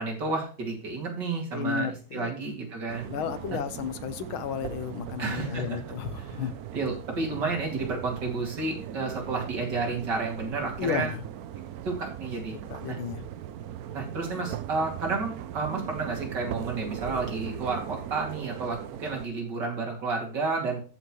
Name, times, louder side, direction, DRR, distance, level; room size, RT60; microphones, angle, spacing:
voice 1, 0.0-3.1 5.2-5.8 6.3-11.1 11.8-12.5 12.9-13.0 13.9-20.8, right 3 dB, 55° right, 0 dB, 3.1 m, -31 dB
voice 2, 1.5-2.3 3.0-6.5 10.8-11.2 12.7-13.2, left 8 dB, 80° left, 12 dB, 1.7 m, -33 dB
sound 1, 2.9-19.3, right 11 dB, 80° right, 0.8 m, -39 dB
14.0 x 5.8 x 3.1 m, 0.39 s
omnidirectional pair, 2.2 m